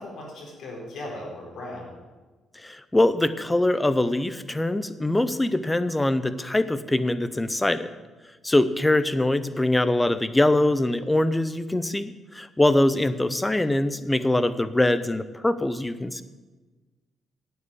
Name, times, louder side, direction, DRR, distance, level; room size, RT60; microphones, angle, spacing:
voice 1, 0.0-1.9, left 1 dB, 70° left, -2 dB, 4.3 m, -37 dB
voice 2, 2.6-7.9 8.4-16.2, left 1 dB, 10° left, 13 dB, 0.7 m, -23 dB
9.5 x 8.1 x 8.6 m, 1.3 s
cardioid pair, 90°, 0 cm